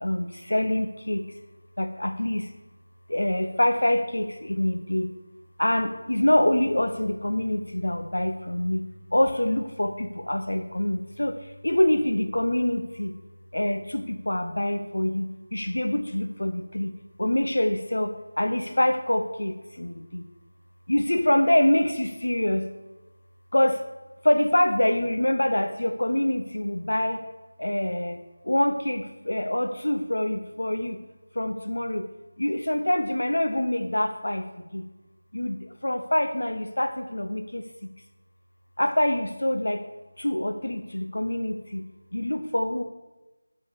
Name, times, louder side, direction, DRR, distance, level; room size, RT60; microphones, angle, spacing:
voice 1, 0.0-1.2 1.8-2.4 3.1-5.1 5.6-8.8 9.1-11.3 11.6-13.1 13.5-16.9 17.2-20.2 20.9-22.6 23.5-23.8 24.2-27.2 27.6-28.2 28.5-31.0 31.4-32.1 32.4-34.4 34.7-34.8 35.3-35.6 35.8-37.6 38.8-39.8 40.2-41.8 42.1-42.8, left 1 dB, 65° left, 8 dB, 0.8 m, -25 dB
14.5 x 5.6 x 6.3 m, 1.1 s
figure-of-eight pair, 165°, 0 cm